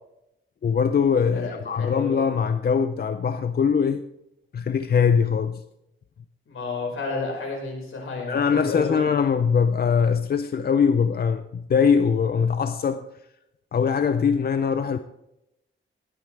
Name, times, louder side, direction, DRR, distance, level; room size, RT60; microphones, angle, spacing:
voice 1, 0.6-4.0 4.5-5.6 8.3-13.1 13.7-15.0, left 6 dB, 50° left, 0.5 m, -22 dB
voice 2, 1.3-2.2 6.5-9.1, left 3 dB, 75° left, 4.9 m, -31 dB
20.0 x 8.9 x 3.3 m
wide cardioid pair, 135°, 21 cm